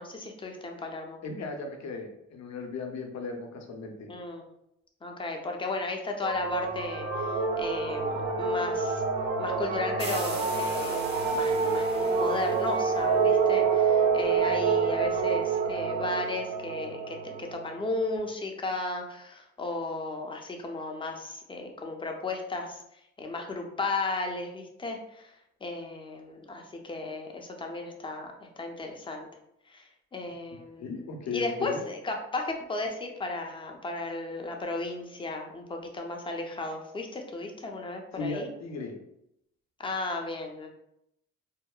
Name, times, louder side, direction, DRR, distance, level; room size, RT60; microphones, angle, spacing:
voice 1, 0.0-1.2 4.1-4.4 5.0-9.0 9.4-11.0 11.3-22.8 23.2-25.3 25.6-29.3 29.7-29.9 30.1-38.5 39.8-40.7, left 2 dB, 15° left, 2 dB, 0.4 m, -35 dB
voice 2, 1.2-4.1 30.8-31.8 38.1-38.9, left 4 dB, 65° left, 3 dB, 0.6 m, -36 dB
sound 1, 6.2-18.1, right 5 dB, 85° right, 0.5 m, -27 dB
sound 2, 10.0-13.6, right 3 dB, 35° right, 0.7 m, -42 dB
2.7 x 2.0 x 2.3 m, 0.79 s
cardioid pair, 90°, 30 cm